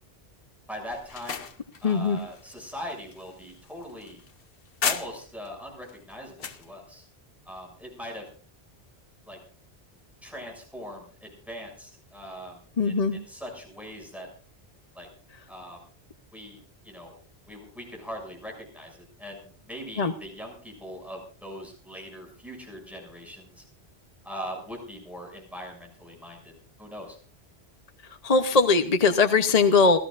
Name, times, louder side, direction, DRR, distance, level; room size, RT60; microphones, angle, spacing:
voice 1, 0.7-1.5 1.8-4.2 4.8-7.1 7.4-8.3 9.3-9.4 10.2-14.3 14.9-15.1 15.5-15.8 16.3-17.2 17.5-23.6 24.2-26.5 26.8-27.2, equal, ahead, 0 dB, 6.7 m, -41 dB
sound 1, 0.9-5.5 5.9-6.7, left 6 dB, 60° left, 1.1 m, -35 dB
voice 2, 1.8-2.2 12.8-13.2 20.0-20.1 28.2-30.0, left 4 dB, 40° left, 7 dB, 0.9 m, -20 dB
29.5 x 14.0 x 2.5 m, 0.40 s
omnidirectional pair, 1.1 m